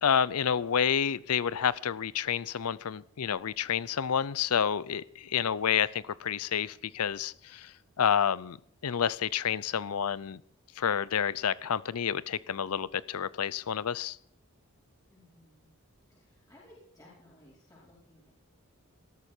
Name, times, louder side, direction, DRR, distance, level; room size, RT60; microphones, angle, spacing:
voice 1, 0.0-7.7 8.0-8.6 8.8-10.4 10.8-14.2, left 8 dB, 85° left, 20 dB, 0.6 m, -29 dB
voice 2, 15.1-15.7 16.1-18.3, left 1 dB, 15° left, -7 dB, 4.7 m, -58 dB
19.5 x 13.0 x 4.5 m, 0.65 s
head